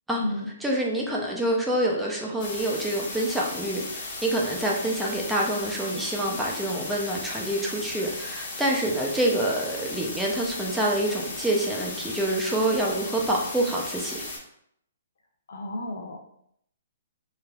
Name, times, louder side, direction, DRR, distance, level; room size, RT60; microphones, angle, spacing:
voice 1, 0.6-14.3, right 1 dB, 5° right, -2 dB, 0.5 m, -27 dB
sound 1, 2.4-14.4, left 2 dB, 45° left, 0.9 m, -36 dB
voice 2, 15.5-16.4, left 1 dB, 75° left, 2 dB, 0.5 m, -33 dB
3.2 x 2.3 x 2.3 m, 0.71 s
hypercardioid pair, 140°, 0 cm